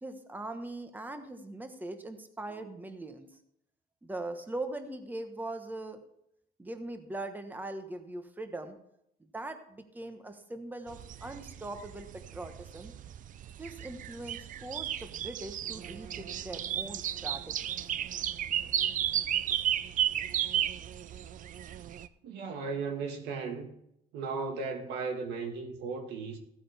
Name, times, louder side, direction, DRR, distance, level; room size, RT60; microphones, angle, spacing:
voice 1, 0.0-3.3 4.0-6.0 6.6-8.8 9.3-12.9 13.6-17.9, right 2 dB, 10° right, 1.1 m, -41 dB
sound 1, 10.9-22.1, right 10 dB, 50° right, 0.5 m, -34 dB
voice 2, 22.2-23.7 24.1-26.4, right 4 dB, 85° right, 1.7 m, -36 dB
15.0 x 8.5 x 3.5 m
cardioid pair, 110°, 17 cm